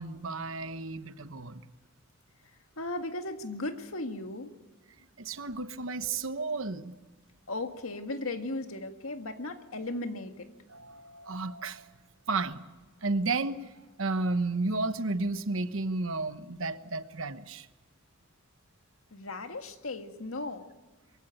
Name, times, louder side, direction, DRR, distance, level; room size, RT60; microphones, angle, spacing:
voice 1, 0.0-1.6 5.2-6.9 10.7-11.9 12.3-12.6 13.0-13.6 14.0-17.7, right 3 dB, 70° right, 11 dB, 1.1 m, -32 dB
voice 2, 2.8-4.5 7.5-10.5 19.1-20.7, left 2 dB, 90° left, 6 dB, 1.8 m, -36 dB
23.0 x 16.0 x 9.1 m, 1.2 s
head